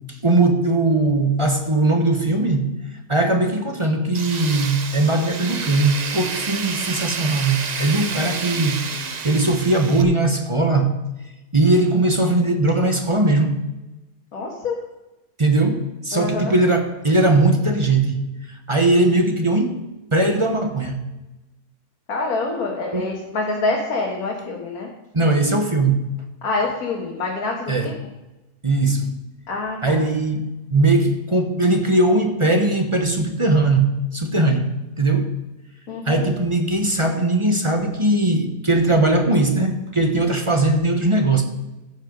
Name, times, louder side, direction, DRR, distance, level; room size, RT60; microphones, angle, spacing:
voice 1, 0.1-2.7 3.1-11.0 11.5-13.6 15.4-19.8 20.1-21.0 22.9-23.1 25.1-26.0 27.7-27.9 28.6-29.1 29.8-35.3 36.1-41.4, right 2 dB, 25° right, 5 dB, 0.9 m, -19 dB
Tools, 4.1-10.0, right 5 dB, 55° right, 0.4 m, -29 dB
voice 2, 14.3-14.8 16.1-16.5 22.1-24.9 26.4-27.9 29.5-30.0 35.9-36.3, left 3 dB, 70° left, -2 dB, 2.0 m, -26 dB
14.5 x 6.3 x 5.2 m, 1.0 s
omnidirectional pair, 1.7 m